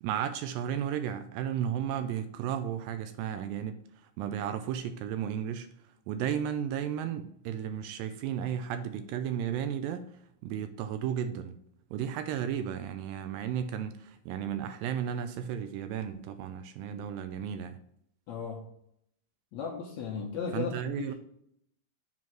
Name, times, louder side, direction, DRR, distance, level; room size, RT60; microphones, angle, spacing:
voice 1, 0.0-3.8 4.2-5.7 6.1-10.0 10.4-11.6 11.9-17.8 20.5-21.1, right 9 dB, 80° right, 2.2 m, -34 dB
voice 2, 18.3-18.6 19.5-21.1, left 6 dB, 70° left, 1.7 m, -36 dB
7.4 x 3.8 x 6.1 m
omnidirectional pair, 4.4 m